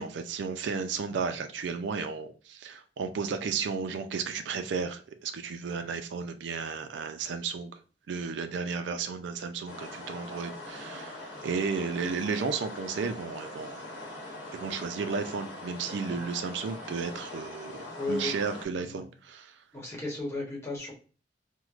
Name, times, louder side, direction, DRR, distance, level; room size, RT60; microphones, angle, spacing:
voice 1, 0.0-7.8 8.1-13.8 14.5-19.5, right 5 dB, 70° right, 0.4 m, -33 dB
sound 1, 9.7-18.7, left 1 dB, 75° left, 1.0 m, -42 dB
voice 2, 18.0-18.3 18.8-19.0 19.7-20.9, left 2 dB, 15° left, 1.1 m, -34 dB
4.5 x 2.1 x 2.4 m
head